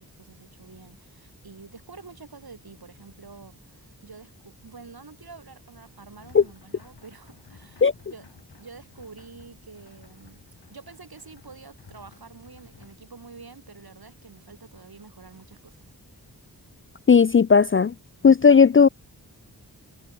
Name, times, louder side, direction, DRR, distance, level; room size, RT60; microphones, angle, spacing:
voice 1, 0.0-8.2 8.6-15.8, right 4 dB, 65° right, 6.0 m, -47 dB
sound 1, 5.9-12.9, left 5 dB, 85° left, 7.5 m, -55 dB
voice 2, 17.1-17.9 18.2-18.9, left 6 dB, 35° left, 0.4 m, -15 dB
wide cardioid pair, 80°, 39 cm